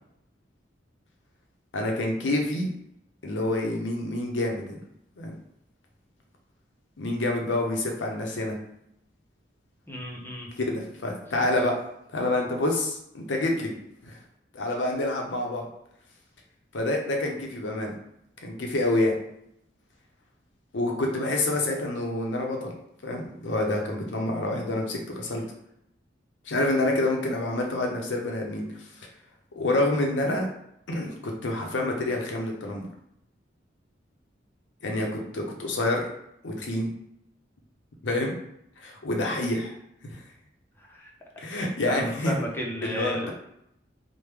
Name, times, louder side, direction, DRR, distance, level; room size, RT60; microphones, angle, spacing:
voice 1, 1.7-2.7 3.2-4.8 5.2-5.3 7.0-8.6 10.6-11.8 12.1-13.7 14.0-14.2 14.5-15.7 16.7-17.9 18.4-19.2 20.7-22.7 23.0-25.4 26.5-28.6 29.6-30.5 30.9-32.9 34.8-36.0 36.4-36.9 38.0-38.3 38.8-39.7 40.0-40.2 41.4-42.4 42.8-43.3, left 2 dB, 80° left, 1 dB, 0.7 m, -27 dB
voice 2, 9.9-10.5 40.9-41.1 41.9-43.3, right 1 dB, 10° left, -1 dB, 0.5 m, -33 dB
3.1 x 2.1 x 3.3 m, 0.77 s
head